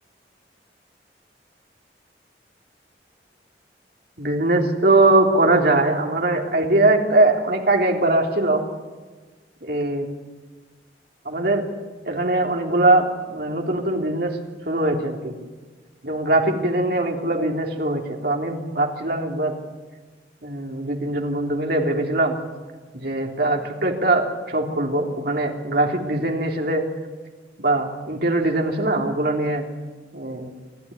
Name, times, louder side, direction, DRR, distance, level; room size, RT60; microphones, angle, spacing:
voice 1, 4.2-8.6 9.6-10.1 11.2-11.6 12.0-14.4 14.6-15.4 16.0-19.5 20.4-22.3 22.9-26.8 27.6-29.6 30.1-30.5, right 2 dB, 60° right, 2 dB, 3.4 m, -21 dB
29.0 x 12.5 x 9.9 m, 1.4 s
head